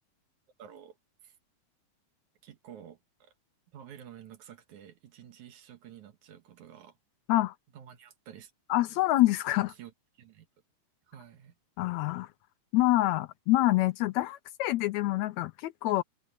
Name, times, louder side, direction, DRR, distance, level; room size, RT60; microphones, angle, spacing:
voice 1, 0.6-1.0 1.2-1.4 2.4-3.3 3.7-7.0 7.7-8.5 8.9-9.0 9.7-10.5 11.1-11.6, right 9 dB, 75° right, 2.9 m, -50 dB
voice 2, 8.7-9.7 11.8-12.3 12.7-16.0, left 16 dB, 80° left, 1.7 m, -26 dB
omnidirectional pair, 3.4 m